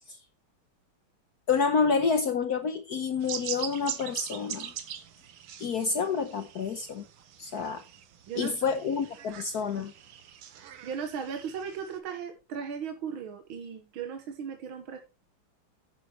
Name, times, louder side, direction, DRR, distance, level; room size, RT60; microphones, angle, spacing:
voice 1, 1.5-4.7 5.6-7.0 7.4-7.8 8.4-9.9, left 5 dB, 60° left, 1.2 m, -28 dB
sound 1, 3.2-12.0, right 9 dB, 90° right, 2.0 m, -42 dB
voice 2, 10.8-15.0, right 7 dB, 70° right, 2.0 m, -37 dB
10.5 x 7.5 x 4.3 m
omnidirectional pair, 2.3 m